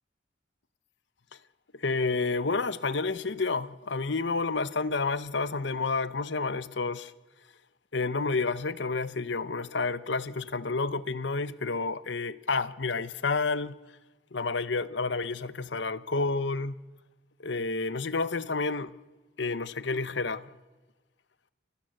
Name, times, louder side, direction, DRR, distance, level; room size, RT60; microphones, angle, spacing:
voice 1, 1.7-7.1 7.9-13.8 14.3-16.8 17.4-19.0 19.4-20.5, left 3 dB, 70° left, 0.9 m, -30 dB
28.5 x 23.5 x 6.6 m
head